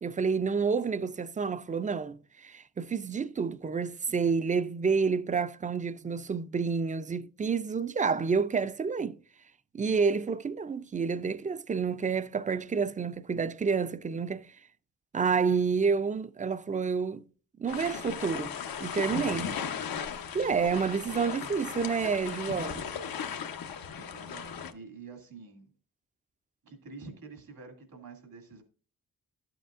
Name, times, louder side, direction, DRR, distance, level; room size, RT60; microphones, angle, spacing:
voice 1, 0.0-9.2 9.7-14.5 15.1-17.2 17.6-18.6 18.8-19.5 20.3-22.8, right 5 dB, 25° right, 0.4 m, -29 dB
sound 1, 17.7-24.7, left 7 dB, 90° left, 0.9 m, -37 dB
voice 2, 23.9-25.7 26.6-28.6, right 4 dB, 85° right, 2.4 m, -48 dB
12.5 x 7.8 x 2.4 m
wide cardioid pair, 90°, 34 cm